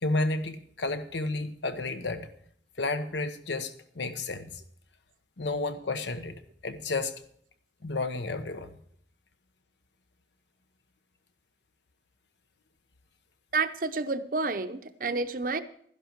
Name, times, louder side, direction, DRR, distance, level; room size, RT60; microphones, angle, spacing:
voice 1, 0.0-2.3 2.8-4.5 5.4-6.3 6.6-7.2 7.8-8.7, left 2 dB, 80° left, 1.1 m, -31 dB
voice 2, 13.5-15.6, right 4 dB, 50° right, 0.7 m, -29 dB
12.0 x 11.0 x 4.6 m
head